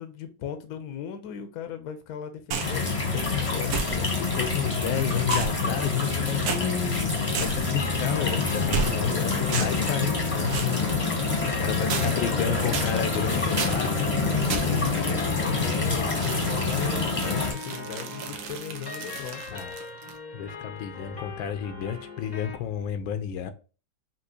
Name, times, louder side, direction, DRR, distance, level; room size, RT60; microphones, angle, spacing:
voice 1, 0.0-4.1 7.8-8.4 8.7-9.8 11.4-12.9 14.1-19.6, left 8 dB, 65° left, 1.0 m, -38 dB
sound 1, 2.5-2.8 3.7-4.3 5.3-6.1 6.5-6.6 7.3-7.8 8.7-9.2 9.5-9.9 10.5-10.8 11.9-12.4 12.7-13.2 13.6-13.9 14.5-14.9 16.2-20.2, right 6 dB, 75° right, 1.5 m, -33 dB
sound 2, 2.6-17.5, left 4 dB, 25° left, 0.9 m, -26 dB
voice 2, 4.1-10.8 11.6-13.9 19.5-19.7 20.3-23.5, left 9 dB, 80° left, 1.3 m, -31 dB
sound 3, 7.8-22.6, left 4 dB, 50° left, 0.5 m, -41 dB
5.9 x 2.9 x 2.9 m
omnidirectional pair, 2.2 m